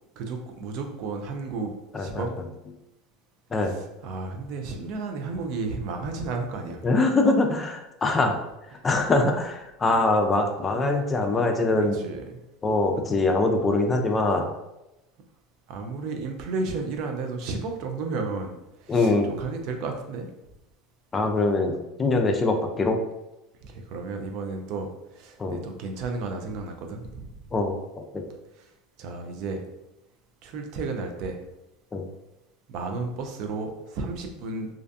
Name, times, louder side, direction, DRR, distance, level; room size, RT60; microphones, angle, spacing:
voice 1, 0.2-2.3 3.6-6.9 11.8-12.4 15.7-20.3 23.6-27.3 28.6-28.7 29.0-29.7 30.4-31.4 32.7-34.7, right 3 dB, 60° right, 4 dB, 0.4 m, -33 dB
voice 2, 1.9-2.3 3.5-3.7 6.8-8.3 8.8-12.0 12.6-14.5 18.9-19.3 21.1-21.7 22.0-23.0 25.4-25.6 27.5-28.2 31.9-32.0, left 2 dB, 25° left, 4 dB, 0.4 m, -23 dB
2.5 x 2.2 x 2.5 m, 0.92 s
supercardioid pair, 100°, 0 cm